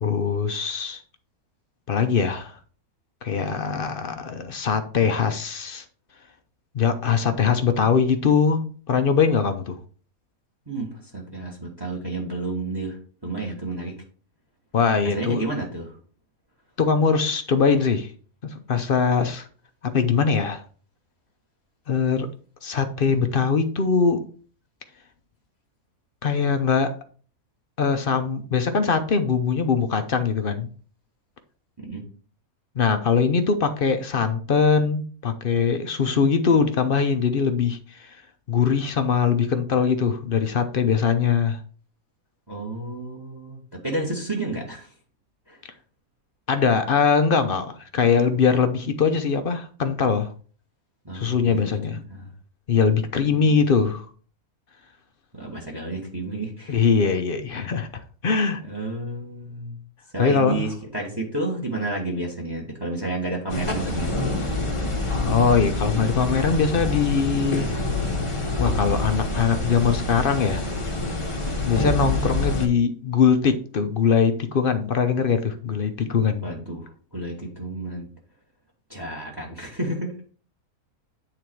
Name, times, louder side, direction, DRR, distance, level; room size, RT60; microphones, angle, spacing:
voice 1, 0.0-1.0 1.9-2.5 3.2-5.8 6.7-8.6 8.9-9.8 14.7-15.4 16.8-18.1 18.4-19.5 19.8-20.6 21.9-22.3 22.6-24.2 26.2-26.9 27.8-30.7 32.8-38.2 38.5-41.6 46.5-50.3 51.1-52.0 52.7-54.1 56.7-57.9 58.2-58.6 60.2-60.7 65.2-67.7 68.6-70.6 71.6-76.5, left 6 dB, 50° left, 8 dB, 0.7 m, -22 dB
voice 2, 10.7-13.9 15.0-16.0 31.8-32.0 42.5-44.9 45.5-45.6 51.0-52.3 53.3-53.6 55.3-56.8 58.6-59.7 60.1-64.2 76.4-78.1 78.9-80.1, right 2 dB, 15° right, 0 dB, 1.6 m, -31 dB
sound 1, 63.5-72.7, left 2 dB, 25° left, 1.0 m, -26 dB
9.2 x 3.8 x 4.6 m, 0.42 s
omnidirectional pair, 1.5 m